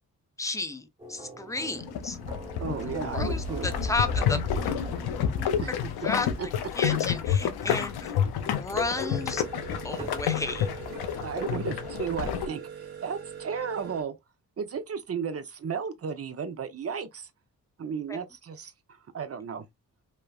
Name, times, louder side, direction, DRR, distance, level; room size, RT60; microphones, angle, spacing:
voice 1, 0.4-2.2 2.9-4.8 6.0-6.3 6.7-9.4 9.8-10.7 18.1-18.2, left 3 dB, 10° left, 0.6 m, -33 dB
OM-FR-piano, 1.0-11.0, right 1 dB, 20° right, 1.3 m, -44 dB
sound 1, 1.8-12.5, left 8 dB, 85° left, 0.5 m, -29 dB
voice 2, 2.6-3.7 5.6-5.7 6.4-6.5 11.2-12.6 13.0-14.2 14.6-17.3 17.8-18.7 19.1-19.7, right 6 dB, 40° right, 0.6 m, -34 dB
sound 2, 8.8-14.0, right 7 dB, 85° right, 0.7 m, -42 dB
3.1 x 2.0 x 2.3 m
cardioid pair, 55°, 37 cm